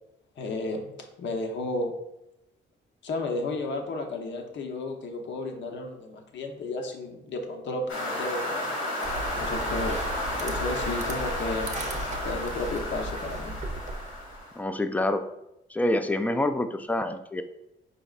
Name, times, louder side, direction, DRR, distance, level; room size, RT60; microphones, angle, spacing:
voice 1, 0.4-1.9 3.0-8.7 9.3-10.0 10.4-11.7 12.2-13.5, left 2 dB, 65° left, 3 dB, 0.8 m, -33 dB
sound 1, 7.9-14.6, left 1 dB, 90° left, 1.5 m, -32 dB
sound 2, 9.0-14.4, right 1 dB, 35° right, 0.7 m, -36 dB
voice 2, 14.6-15.2 15.7-17.4, left 1 dB, 10° left, 9 dB, 0.3 m, -26 dB
5.1 x 4.1 x 2.4 m, 0.87 s
cardioid pair, 90°, 20 cm